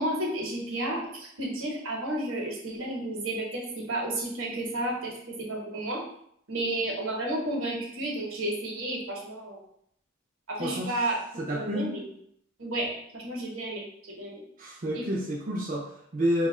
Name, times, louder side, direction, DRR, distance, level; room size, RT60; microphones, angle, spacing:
voice 1, 0.0-5.1 5.5-6.0 6.5-9.6 10.5-11.2 11.5-12.1 12.6-14.4 14.9-15.0, right 1 dB, 75° right, -1 dB, 1.0 m, -32 dB
voice 2, 10.6-10.9 11.4-11.9 14.6-16.5, equal, 40° right, -3 dB, 0.5 m, -29 dB
2.7 x 2.3 x 4.2 m, 0.69 s
head